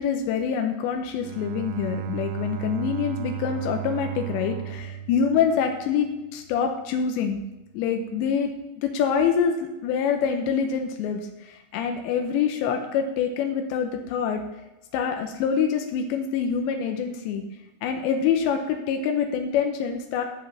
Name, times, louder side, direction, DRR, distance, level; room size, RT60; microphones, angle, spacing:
voice 1, 0.0-7.4 7.7-14.4 14.9-17.4 17.8-20.2, left 7 dB, 90° left, 4 dB, 3.1 m, -25 dB
Bowed string instrument, 1.1-6.1, right 11 dB, 85° right, 2.3 m, -35 dB
13.0 x 5.3 x 6.1 m, 1.0 s
omnidirectional pair, 5.1 m